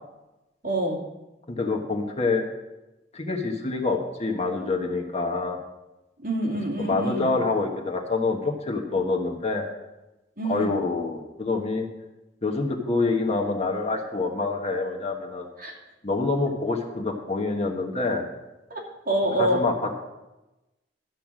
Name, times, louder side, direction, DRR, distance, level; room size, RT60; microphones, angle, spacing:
voice 1, 0.6-1.0 6.2-7.3 10.4-10.7 15.6-15.7 18.7-19.6, right 1 dB, 50° right, -2 dB, 2.6 m, -26 dB
voice 2, 1.5-2.4 3.1-5.6 6.8-9.7 10.5-11.9 12.4-15.5 16.0-18.2 19.4-20.0, left 3 dB, 35° left, 2 dB, 1.3 m, -26 dB
12.0 x 5.7 x 7.4 m, 1.0 s
head